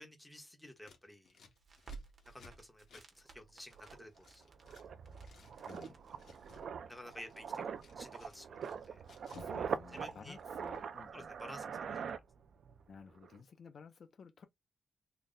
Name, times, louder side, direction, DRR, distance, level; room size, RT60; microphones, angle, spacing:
voice 1, 0.0-1.4 2.3-4.4 6.9-9.0 9.6-9.7 9.9-10.4 11.1-12.0, left 1 dB, 5° left, 0.9 m, -53 dB
Scissors, 0.8-4.9 5.1-6.7 7.0-9.6 9.8-10.8, left 4 dB, 70° left, 1.2 m, -60 dB
Crackle, 1.5-12.0, right 5 dB, 45° right, 1.1 m, -59 dB
sound 1, 3.4-3.5 3.8-12.8 13.1-13.4, right 7 dB, 65° right, 0.4 m, -43 dB
voice 2, 5.6-6.0 9.4-11.3 12.9-14.5, left 5 dB, 50° left, 0.5 m, -54 dB
3.9 x 2.1 x 3.7 m
wide cardioid pair, 180°, 0 cm